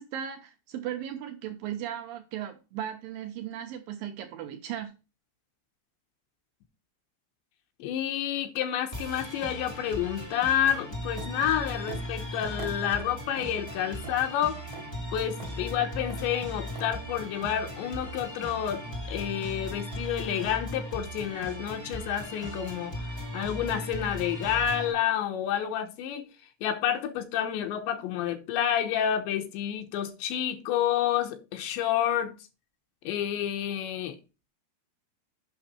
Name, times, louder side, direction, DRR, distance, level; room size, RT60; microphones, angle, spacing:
voice 1, 0.0-5.0, right 10 dB, 90° right, 2.0 m, -37 dB
voice 2, 7.8-14.6 15.1-18.8 19.1-23.0 23.3-26.3 26.6-32.3 33.0-34.2, left 10 dB, 80° left, 3.2 m, -29 dB
sound 1, 8.9-24.9, equal, 45° left, 0.3 m, -38 dB
sound 2, 11.2-11.4 11.9-12.1 12.6-12.8 13.4-13.5 14.0-14.2 14.7-14.9 15.4-15.6 16.1-16.3 16.7-16.9, right 5 dB, 65° right, 1.8 m, -42 dB
9.0 x 6.0 x 4.2 m
omnidirectional pair, 5.2 m